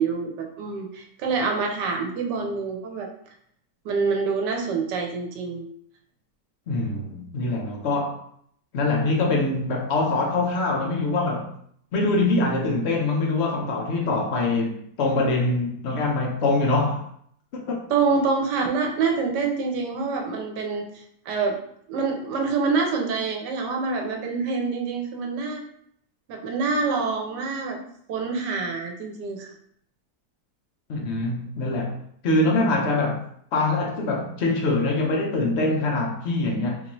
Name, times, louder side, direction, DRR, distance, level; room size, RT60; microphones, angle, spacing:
voice 1, 0.0-3.1 3.8-5.6 17.9-21.6 21.9-25.6 26.3-27.8 28.1-29.5, right 4 dB, 85° right, 1.3 m, -26 dB
voice 2, 6.7-8.2 8.7-11.5 11.9-17.0 17.5-17.8 30.9-32.0 32.2-33.2 33.5-36.8, left 2 dB, 55° left, 0.8 m, -24 dB
3.7 x 2.7 x 3.0 m
omnidirectional pair, 1.8 m